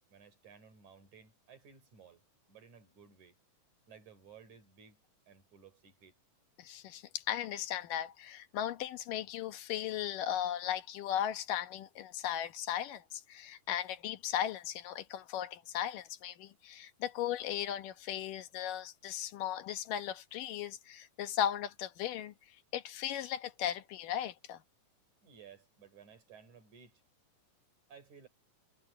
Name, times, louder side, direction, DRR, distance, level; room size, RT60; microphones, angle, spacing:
voice 1, 0.1-2.2 2.5-3.4 3.9-6.1 25.2-27.0 27.9-28.3, right 6 dB, 55° right, 6.2 m, -57 dB
voice 2, 6.6-22.3 22.7-24.6, left 10 dB, 75° left, 2.7 m, -37 dB
omnidirectional pair, 4.0 m